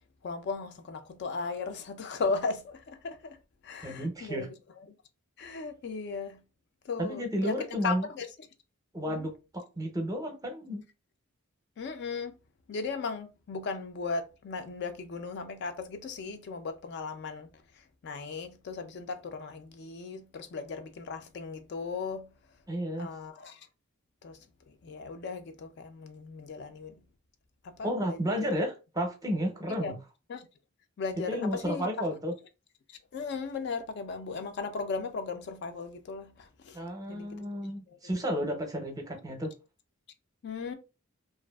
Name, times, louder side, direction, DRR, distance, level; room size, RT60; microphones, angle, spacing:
voice 1, 0.2-3.4 3.6-4.5 4.8-4.9 5.4-6.4 6.8-7.5 7.8-8.3 9.1-9.3 11.8-12.4 12.7-22.3 23.0-23.7 24.2-24.4 24.7-27.0 27.6-28.6 29.8-30.0 30.3-30.5 31.0-32.1 32.9-36.8 37.1-37.4 37.9-38.1 40.4-40.7, left 4 dB, 55° left, 0.4 m, -37 dB
voice 2, 3.8-4.5 7.0-8.1 8.9-10.8 22.7-23.1 27.8-30.0 31.3-32.3 36.7-39.5, equal, 15° right, 0.6 m, -32 dB
2.6 x 2.4 x 2.2 m
head